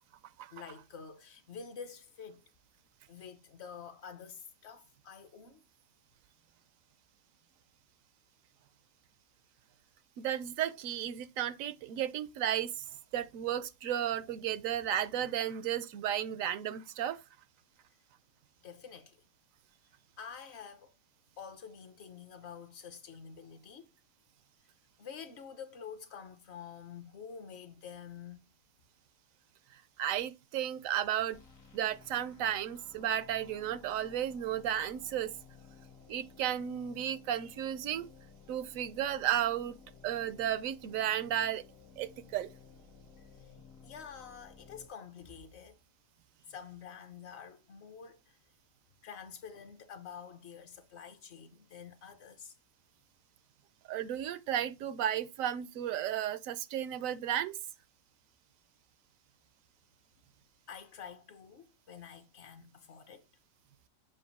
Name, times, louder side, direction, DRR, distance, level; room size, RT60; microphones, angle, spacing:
voice 1, 0.5-2.4 3.1-5.6 18.6-19.3 20.2-21.0 21.4-23.9 25.0-28.4 43.2-43.5 43.8-45.8 46.5-48.4 49.0-52.5 60.7-63.3, left 7 dB, 60° left, 1.0 m, -48 dB
voice 2, 10.2-12.9 13.1-17.2 30.0-31.4 31.7-35.4 36.1-38.1 38.5-41.6 42.0-42.5 53.9-57.6, right 10 dB, 85° right, 1.0 m, -33 dB
sound 1, 31.3-44.9, left 5 dB, 85° left, 1.4 m, -56 dB
7.0 x 2.6 x 5.2 m
omnidirectional pair, 1.4 m